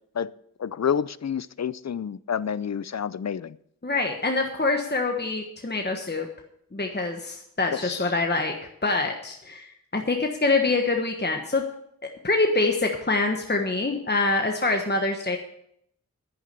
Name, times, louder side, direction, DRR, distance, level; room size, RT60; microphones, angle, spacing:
voice 1, 0.6-3.6 7.7-8.1, left 7 dB, 50° left, 0.5 m, -29 dB
voice 2, 3.8-6.3 6.7-8.5 8.8-11.6 12.2-15.4, left 3 dB, 30° left, 1.3 m, -25 dB
11.0 x 9.8 x 6.8 m
wide cardioid pair, 60°, 34 cm